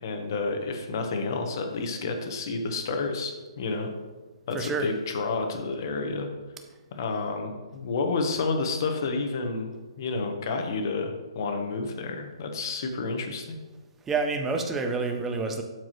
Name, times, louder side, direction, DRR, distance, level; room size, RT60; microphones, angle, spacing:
voice 1, 0.0-3.9 4.5-6.3 6.9-13.6, left 3 dB, 40° left, 5 dB, 1.1 m, -30 dB
voice 2, 4.5-4.9 14.0-15.6, right 4 dB, 10° right, 5 dB, 0.5 m, -28 dB
12.0 x 4.6 x 3.1 m, 1.3 s
hypercardioid pair, 165°, 3 cm